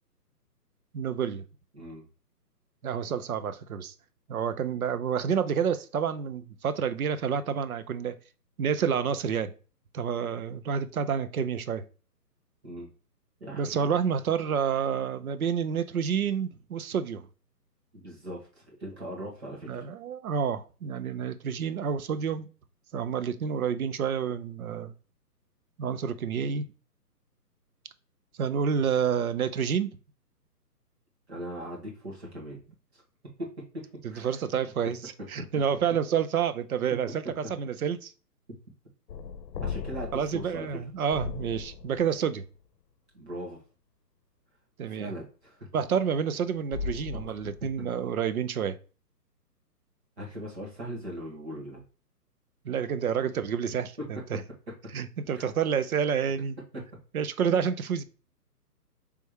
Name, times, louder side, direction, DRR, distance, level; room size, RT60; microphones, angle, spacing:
voice 1, 0.9-1.4 2.8-3.9 4.3-8.2 8.6-9.5 9.9-11.8 13.5-17.3 19.7-22.5 22.9-24.9 25.8-26.7 28.4-29.9 34.0-35.0 35.3-38.1 40.1-42.5 44.8-45.1 45.7-48.8 52.6-54.4 54.9-56.6 57.1-58.0, right 7 dB, 60° right, 0.5 m, -29 dB
voice 2, 1.7-2.1 12.6-12.9 13.4-13.9 17.9-19.9 31.3-32.6 32.9-33.0 33.4-34.4 35.4-35.5 39.6-40.8 43.1-43.6 44.9-45.7 47.1-47.3 50.2-51.8 54.0-54.1 55.3-55.5 56.7-56.8 57.4-57.6, equal, 40° right, 1.6 m, -40 dB
sound 1, 39.1-42.3 46.7-48.0, left 5 dB, 90° left, 0.7 m, -37 dB
3.4 x 3.0 x 4.7 m
hypercardioid pair, 180°, 49 cm